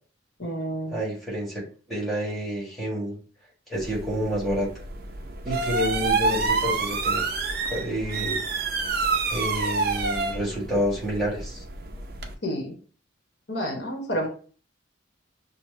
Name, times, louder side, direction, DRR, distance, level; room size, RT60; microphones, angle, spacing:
voice 1, 0.4-1.0 12.4-12.7 13.5-14.3, equal, 60° left, 1 dB, 1.0 m, -29 dB
voice 2, 0.9-3.2 3.7-4.7 5.4-7.2 7.7-8.4 9.3-11.6, equal, ahead, -5 dB, 1.5 m, -29 dB
sound 1, 3.7-12.3, right 4 dB, 50° right, 0.6 m, -28 dB
6.2 x 2.1 x 3.2 m, 0.41 s
head